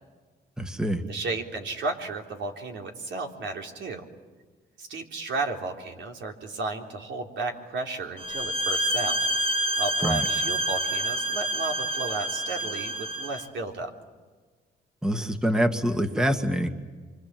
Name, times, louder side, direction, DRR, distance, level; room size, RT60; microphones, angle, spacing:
voice 1, 0.6-1.0 10.0-10.3 15.0-16.7, equal, 5° right, 6 dB, 1.9 m, -25 dB
voice 2, 1.1-4.0 4.8-9.2 9.8-13.9, right 3 dB, 70° right, 2 dB, 3.7 m, -33 dB
sound 1, 8.2-13.4, right 1 dB, 30° right, 1.8 m, -28 dB
26.5 x 25.0 x 7.6 m, 1.4 s
cardioid pair, 90°, 20 cm